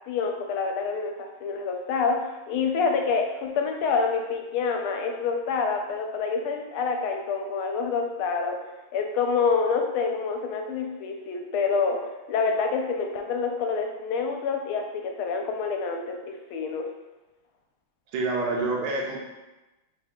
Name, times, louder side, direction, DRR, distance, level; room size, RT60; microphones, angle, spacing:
voice 1, 0.1-8.6 8.9-12.0 12.3-16.9, left 5 dB, 80° left, 3 dB, 1.4 m, -27 dB
voice 2, 18.1-19.2, right 3 dB, 80° right, -1 dB, 1.6 m, -27 dB
3.7 x 2.7 x 3.5 m, 1.1 s
omnidirectional pair, 2.4 m